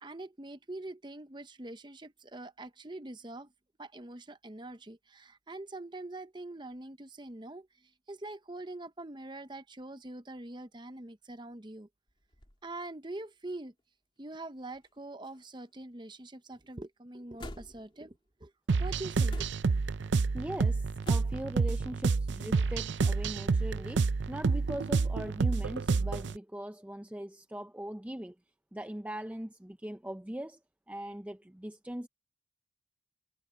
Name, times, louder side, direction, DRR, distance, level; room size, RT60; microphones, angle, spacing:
voice 1, 0.0-3.5 3.8-11.9 12.6-13.7 14.2-18.5 18.8-19.5, right 2 dB, 25° right, 0.8 m, -44 dB
sound 1, 12.1-12.6 13.4-13.5 14.7-15.0 15.2-15.8 17.4-18.0 19.3-19.8 21.0-21.6 23.0-23.4, left 1 dB, 25° left, 2.8 m, -47 dB
sound 2, 18.7-26.4, right 4 dB, 65° right, 0.5 m, -29 dB
voice 2, 20.3-28.4 28.7-30.6 30.9-32.1, right 1 dB, 5° right, 0.4 m, -40 dB
head